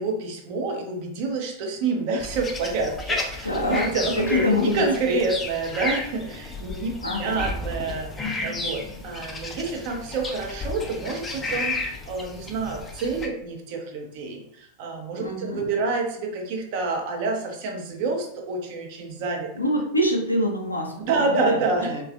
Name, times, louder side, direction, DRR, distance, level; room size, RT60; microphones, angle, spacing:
voice 1, 0.0-6.9 7.2-19.5 21.0-22.0, right 3 dB, 45° right, 2 dB, 0.6 m, -28 dB
sound 1, 2.2-13.3, left 2 dB, 15° left, 0.4 m, -33 dB
voice 2, 3.4-4.9 7.0-7.5 15.2-15.7 19.6-21.6 21.9-22.0, left 1 dB, 85° left, 0 dB, 0.6 m, -25 dB
3.2 x 2.3 x 2.4 m, 0.70 s
figure-of-eight pair, 90°, 0 cm